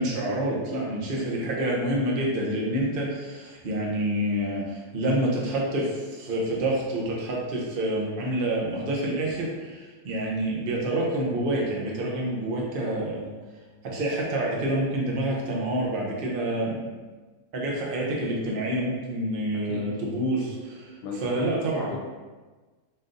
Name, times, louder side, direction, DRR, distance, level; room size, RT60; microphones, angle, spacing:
voice 1, 0.0-13.3 13.8-16.9 17.5-20.9 21.2-21.9, right 1 dB, 50° right, -3 dB, 0.7 m, -27 dB
voice 2, 19.5-19.9 21.0-22.0, left 3 dB, 80° left, -2 dB, 1.2 m, -35 dB
3.9 x 2.6 x 3.8 m, 1.3 s
omnidirectional pair, 1.8 m